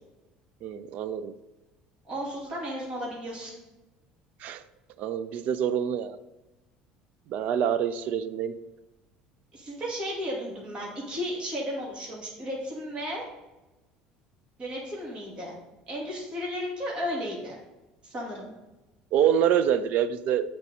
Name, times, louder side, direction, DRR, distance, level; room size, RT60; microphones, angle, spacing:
voice 1, 0.6-1.3 4.4-4.6 5.0-6.2 7.3-8.6 19.1-20.4, right 9 dB, 55° right, 13 dB, 0.5 m, -26 dB
voice 2, 2.0-3.6 9.5-13.2 14.6-15.5 15.9-17.6 18.0-18.5, equal, 35° right, -3 dB, 2.3 m, -34 dB
8.3 x 4.5 x 5.3 m, 1.1 s
cardioid pair, 135°, 3 cm